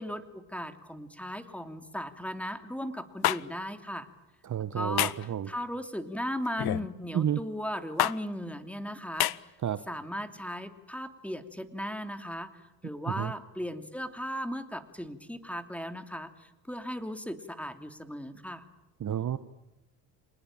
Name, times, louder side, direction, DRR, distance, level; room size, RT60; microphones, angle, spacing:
voice 1, 0.0-4.1 4.7-9.5 9.9-12.5 12.8-18.6, equal, 5° left, 8 dB, 2.9 m, -37 dB
sound 1, 3.2-3.4 5.0-5.3 6.6-6.9 8.0-8.2 9.2-9.4, left 14 dB, 50° left, 0.9 m, -26 dB
voice 2, 4.4-5.5 7.1-7.4 9.6-9.8 13.0-13.3 19.0-19.4, right 9 dB, 35° right, 13 dB, 1.2 m, -30 dB
27.0 x 20.0 x 9.0 m, 1.0 s
supercardioid pair, 70°, 49 cm